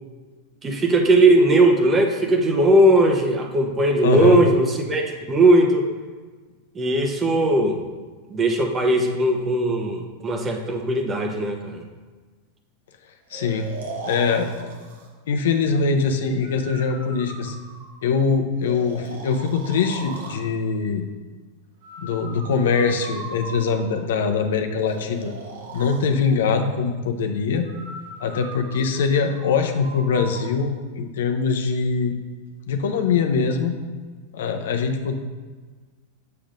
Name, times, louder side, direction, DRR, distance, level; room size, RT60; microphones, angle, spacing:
voice 1, 0.6-5.8 6.7-7.8 8.3-11.8, right 1 dB, 20° right, 2 dB, 1.0 m, -18 dB
voice 2, 4.0-4.4 13.3-13.7 14.0-14.7 15.3-17.6 18.0-21.0 22.0-25.3 25.7-27.7 28.2-32.1 32.7-33.8 34.3-35.1, left 5 dB, 80° left, 5 dB, 0.7 m, -22 dB
Breathing, 13.3-15.1 16.4-18.1 18.6-20.4 21.8-24.1 24.9-26.0 27.6-30.5, right 2 dB, 90° right, 1.3 m, -38 dB
7.0 x 6.7 x 2.6 m, 1.4 s
hypercardioid pair, 120°, 0 cm